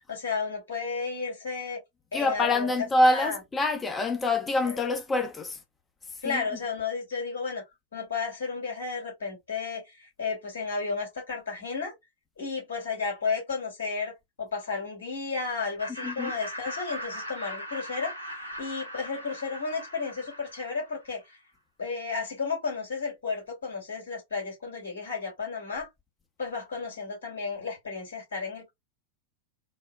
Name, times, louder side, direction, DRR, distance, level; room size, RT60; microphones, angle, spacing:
voice 1, 0.0-1.8 2.1-2.7 3.1-3.4 4.6-4.8 6.2-7.6 7.9-11.9 12.4-18.1 18.6-21.4 21.8-25.9 26.4-28.7, left 4 dB, 65° left, 2.3 m, -33 dB
voice 2, 2.1-5.6 6.2-6.6 16.0-16.4, left 2 dB, 15° left, 0.7 m, -26 dB
Laughter, 15.8-21.1, equal, 90° right, 0.8 m, -39 dB
4.1 x 2.1 x 2.3 m
figure-of-eight pair, 90°, 0 cm